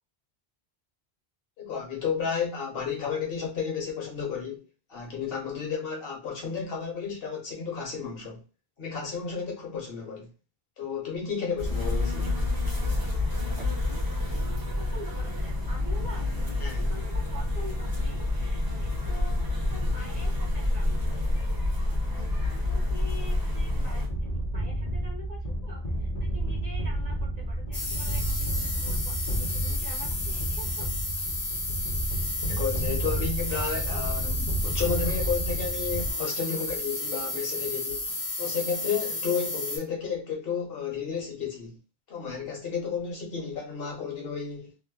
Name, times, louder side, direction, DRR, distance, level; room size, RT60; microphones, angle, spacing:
voice 1, 1.6-4.6 4.9-8.4 8.8-10.3 10.8-12.4 16.6-16.9 32.5-38.1 38.4-41.8 42.1-44.7, left 6 dB, 65° left, 1.1 m, -32 dB
sound 1, 11.6-24.1, left 2 dB, 25° right, 0.6 m, -28 dB
voice 2, 13.9-21.2 22.0-30.9, equal, 45° right, 0.9 m, -46 dB
sound 2, 24.1-36.1, right 1 dB, 45° left, 0.6 m, -31 dB
sound 3, 27.7-39.8, left 2 dB, 90° left, 1.2 m, -33 dB
3.0 x 2.1 x 2.3 m
omnidirectional pair, 1.0 m